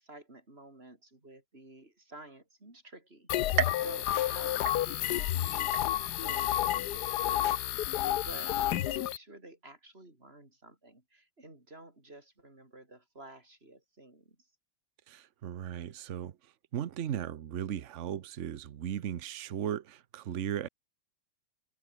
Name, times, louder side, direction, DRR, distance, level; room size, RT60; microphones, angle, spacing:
voice 1, 0.0-14.5, right 2 dB, 25° right, 5.8 m, -51 dB
sound 1, 3.3-9.2, left 13 dB, 70° left, 1.0 m, -30 dB
sound 2, 3.6-5.3 5.7-6.3 6.8-6.9 7.9-8.0, right 10 dB, 90° right, 2.3 m, -36 dB
voice 2, 15.1-16.4 16.7-20.7, right 9 dB, 70° right, 0.7 m, -36 dB
omnidirectional pair, 2.4 m